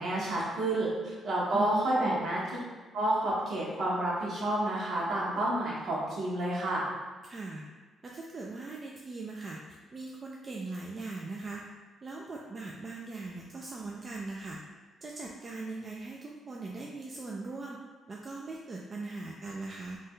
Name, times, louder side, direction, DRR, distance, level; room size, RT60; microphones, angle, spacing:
voice 1, 0.0-2.4 2.9-6.8, right 1 dB, 65° right, -5 dB, 1.0 m, -29 dB
voice 2, 1.5-2.2 7.2-7.7 8.0-11.7 12.0-14.6 15.0-17.8 18.1-20.0, right 3 dB, 35° right, -2 dB, 0.3 m, -40 dB
2.7 x 2.2 x 3.5 m, 1.4 s
cardioid pair, 90°, 0 cm